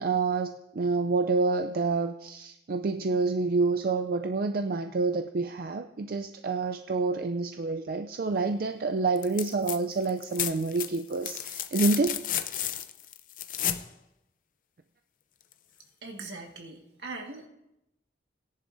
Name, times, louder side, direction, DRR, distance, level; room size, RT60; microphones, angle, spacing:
voice 1, 0.0-12.2, right 3 dB, 55° right, 7 dB, 0.4 m, -28 dB
sound 1, 9.2-9.8 10.0-13.9 15.5-15.6, left 11 dB, 50° left, 0.5 m, -32 dB
voice 2, 16.0-17.5, right 3 dB, 75° right, 2 dB, 1.7 m, -41 dB
17.5 x 10.5 x 2.6 m, 0.88 s
head